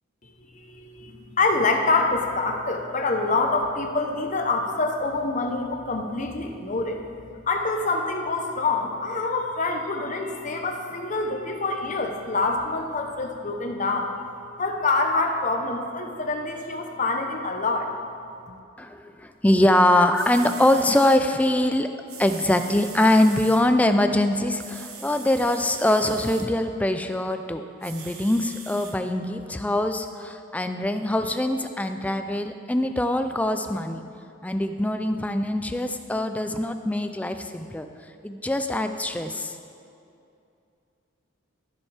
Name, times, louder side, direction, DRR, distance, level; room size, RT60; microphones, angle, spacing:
voice 1, 0.2-7.0 7.5-14.1 14.6-17.9, left 3 dB, 35° left, 3 dB, 0.8 m, -26 dB
voice 2, 18.8-21.9 22.2-34.0 34.4-37.9 38.2-39.6, left 1 dB, 5° left, 8 dB, 0.3 m, -23 dB
sound 1, 19.8-19.9 20.1-21.2 22.1-23.6 24.6-26.5 27.8-28.9 29.6-29.7, right 6 dB, 85° right, 1.1 m, -41 dB
15.5 x 7.1 x 3.4 m, 2.6 s
head